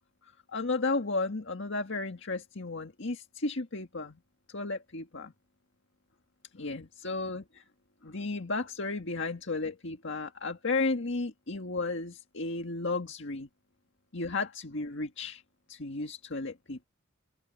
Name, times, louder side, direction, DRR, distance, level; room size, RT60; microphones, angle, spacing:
voice 1, 0.2-4.2 4.5-5.3 6.5-7.6 8.0-13.5 14.1-15.4 15.7-16.8, left 3 dB, 60° left, 1.8 m, -34 dB
open air
head